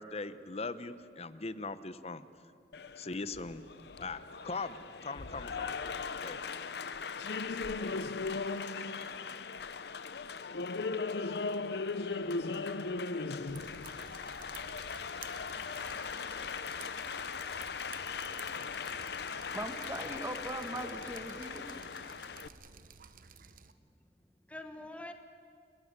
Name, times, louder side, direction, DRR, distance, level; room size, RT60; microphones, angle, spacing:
voice 1, 0.0-2.3 3.0-3.6 4.0-5.8 6.2-6.4, left 3 dB, 35° left, 14 dB, 0.8 m, -40 dB
Applause, 2.7-22.5, left 4 dB, 65° left, 0.7 m, -38 dB
Drip, 13.5-23.7, right 6 dB, 50° right, 0.9 m, -53 dB
voice 2, 19.5-21.9, right 1 dB, 15° right, 7 dB, 1.4 m, -40 dB
voice 3, 23.9-25.1, left 1 dB, 5° left, 6 dB, 1.4 m, -51 dB
29.5 x 15.0 x 8.9 m, 2.3 s
head